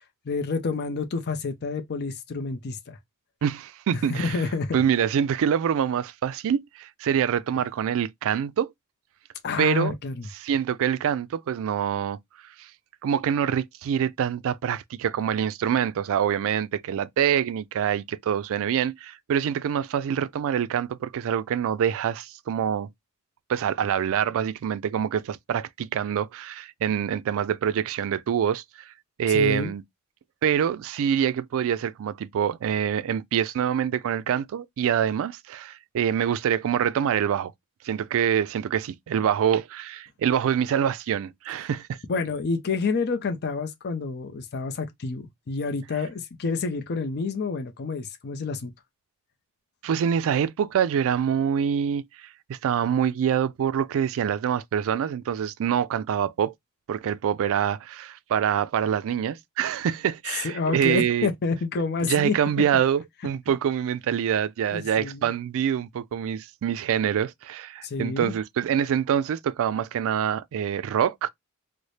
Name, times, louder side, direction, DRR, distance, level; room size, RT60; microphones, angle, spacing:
voice 1, 0.0-3.0 4.1-4.8 9.4-10.3 29.3-29.7 42.1-48.7 60.4-62.3 64.7-65.3 67.8-68.4, left 4 dB, 50° left, 0.5 m, -28 dB
voice 2, 3.4-4.4 4.7-8.7 9.6-9.9 10.4-12.2 12.6-12.7 13.0-22.9 23.5-28.6 29.2-29.8 30.4-37.5 37.8-42.0 49.8-56.5 56.9-61.3 62.0-71.3, right 8 dB, 65° right, 0.3 m, -25 dB
4.0 x 2.1 x 3.1 m
head